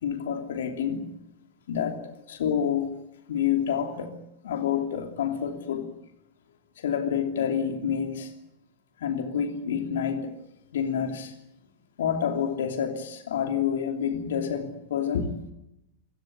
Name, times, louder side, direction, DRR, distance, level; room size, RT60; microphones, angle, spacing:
voice 1, 0.0-1.1 1.7-2.9 3.3-4.1 4.4-5.9 6.8-8.3 9.0-10.3 10.7-11.3 12.0-15.3, left 8 dB, 60° left, 2.9 m, -28 dB
26.5 x 17.0 x 9.3 m
figure-of-eight pair, 90°, 0 cm